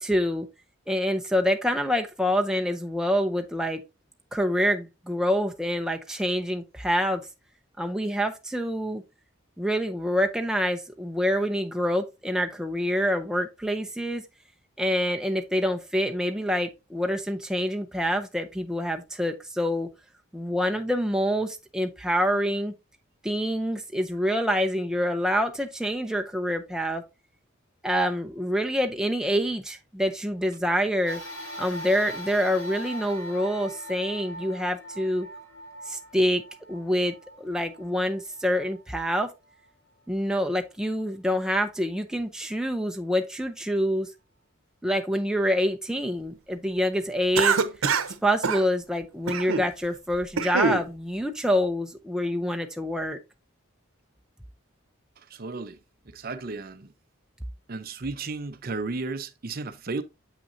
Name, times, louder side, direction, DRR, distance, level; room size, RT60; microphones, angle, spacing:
voice 1, 0.0-0.5 0.9-3.8 4.3-7.3 7.8-9.0 9.6-14.2 14.8-19.9 20.3-22.7 23.2-27.0 27.8-31.2 31.6-35.3 35.9-36.4 36.7-39.3 40.1-44.1 44.8-47.6 48.2-53.2, equal, 5° right, 0.5 m, -26 dB
sound 1, 31.1-39.7 40.3-40.4 41.5-41.6, equal, 70° left, 4.8 m, -41 dB
Cough, 47.3-48.1 48.4-48.6 49.3-49.7 50.1-50.8, right 5 dB, 90° right, 0.7 m, -24 dB
voice 2, 55.2-55.8 56.1-56.9 57.7-60.0, right 3 dB, 45° right, 0.6 m, -34 dB
7.5 x 5.9 x 2.6 m
head